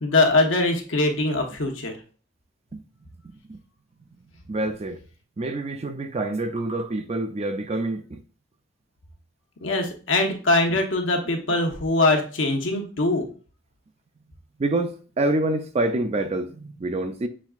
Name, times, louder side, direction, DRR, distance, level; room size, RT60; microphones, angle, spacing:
voice 1, 0.0-1.9 9.6-13.3, left 2 dB, 80° left, 1.0 m, -22 dB
voice 2, 3.2-3.6 4.2-5.0 5.4-8.2 10.7-10.8 11.5-11.6 14.6-17.3, right 2 dB, 35° right, 0.4 m, -27 dB
6.2 x 3.5 x 2.4 m
head